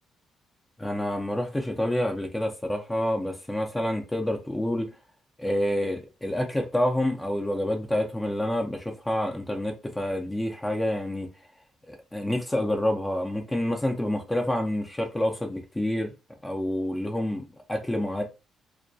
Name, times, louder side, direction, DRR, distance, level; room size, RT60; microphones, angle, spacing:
voice 1, 0.8-4.9 5.4-11.3 11.9-16.1 16.4-17.4 17.7-18.2, left 1 dB, 10° left, 0.4 m, -28 dB
2.2 x 2.2 x 2.6 m
cardioid pair, 90°, 0 cm